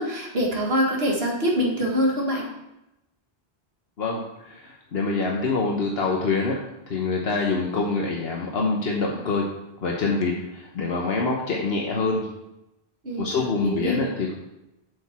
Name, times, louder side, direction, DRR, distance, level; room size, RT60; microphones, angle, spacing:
voice 1, 0.0-2.4 13.0-14.0, equal, 70° right, -1 dB, 2.0 m, -25 dB
voice 2, 4.0-6.6 6.9-9.4 9.8-12.3 13.2-14.3, left 3 dB, 70° left, -1 dB, 1.2 m, -25 dB
7.9 x 6.7 x 4.2 m, 0.91 s
omnidirectional pair, 1.1 m